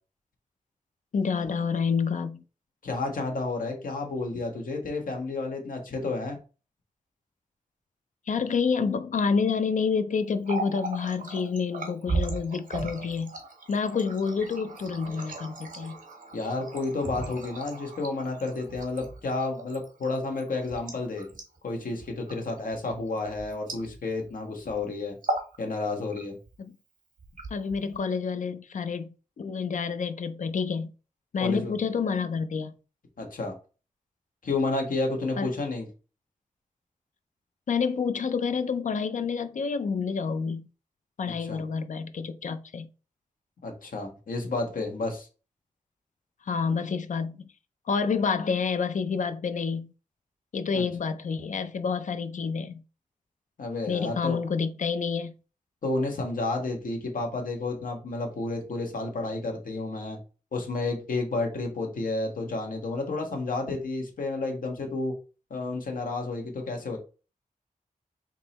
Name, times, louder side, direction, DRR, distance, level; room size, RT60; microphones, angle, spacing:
voice 1, 1.1-2.4 8.3-13.3 13.7-16.0 26.6-26.7 27.5-30.9 31.3-32.7 35.4-35.5 37.7-40.7 41.2-42.9 46.4-47.5 47.9-49.9 50.5-52.8 53.9-55.3, left 5 dB, 65° left, 0.4 m, -28 dB
voice 2, 2.8-6.4 16.3-21.3 21.6-25.2 25.6-26.4 31.4-31.7 33.2-33.5 34.4-35.9 41.2-41.6 43.6-45.3 50.7-50.8 53.6-54.4 55.8-60.2 60.5-65.1 65.5-67.0, left 3 dB, 85° left, 1.1 m, -31 dB
Water tap faucet, 10.3-24.3 24.6-24.8 25.1-25.6 25.9-26.5 27.2-28.0, right 3 dB, 85° right, 1.3 m, -37 dB
3.7 x 2.9 x 4.1 m
wide cardioid pair, 100°, 14 cm